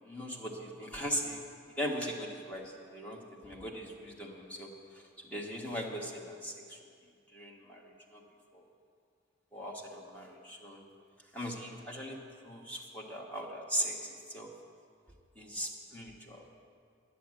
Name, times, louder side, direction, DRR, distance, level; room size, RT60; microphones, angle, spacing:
voice 1, 0.0-1.4 1.8-3.2 3.4-4.7 5.2-6.8 7.3-8.2 8.5-8.6 9.5-10.8 11.3-12.2 12.4-14.0 14.3-14.5 15.4-16.6, equal, 10° left, -2 dB, 1.4 m, -39 dB
10.5 x 8.6 x 7.6 m, 2.3 s
head